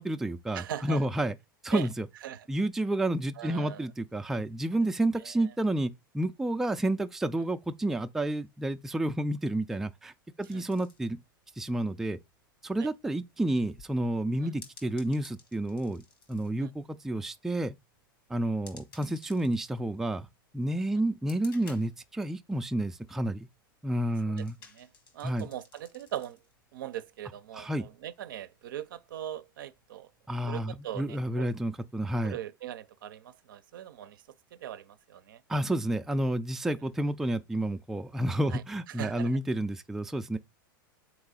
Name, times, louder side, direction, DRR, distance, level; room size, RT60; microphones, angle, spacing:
voice 1, 0.0-1.4 1.6-2.1 2.5-10.1 10.4-11.2 11.6-12.2 12.6-16.0 16.3-17.7 18.3-20.3 20.5-23.5 23.8-24.6 25.2-25.5 27.5-27.9 30.3-32.4 35.5-40.4, right 1 dB, 5° right, 0.3 m, -30 dB
voice 2, 0.5-1.1 1.7-1.9 2.2-2.5 3.4-3.9 5.2-5.5 10.5-10.6 12.8-12.9 14.4-14.5 16.6-16.7 20.9-21.0 24.4-24.5 24.7-24.9 25.1-26.4 26.7-30.1 30.5-31.5 32.2-34.2 34.5-35.4 38.5-38.6 38.9-39.4, right 11 dB, 70° right, 0.5 m, -40 dB
sound 1, 10.4-30.3, left 4 dB, 75° left, 1.6 m, -58 dB
3.9 x 3.0 x 3.8 m
hypercardioid pair, 95°, 12 cm